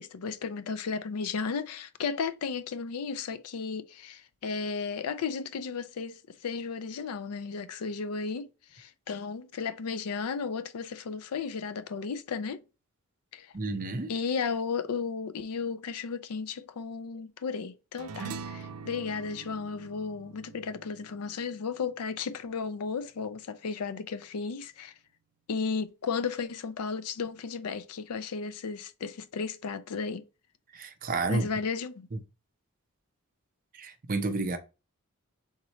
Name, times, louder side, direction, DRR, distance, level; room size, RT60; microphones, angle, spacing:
voice 1, 0.0-12.6 13.3-13.5 14.1-24.9 25.5-30.2 31.3-32.1, left 5 dB, 80° left, 0.4 m, -34 dB
voice 2, 13.5-14.1 30.7-31.5 32.1-32.2 33.7-34.6, right 3 dB, 40° right, 0.6 m, -31 dB
sound 1, 18.0-22.7, right 5 dB, 80° right, 0.5 m, -44 dB
3.6 x 3.1 x 4.1 m
head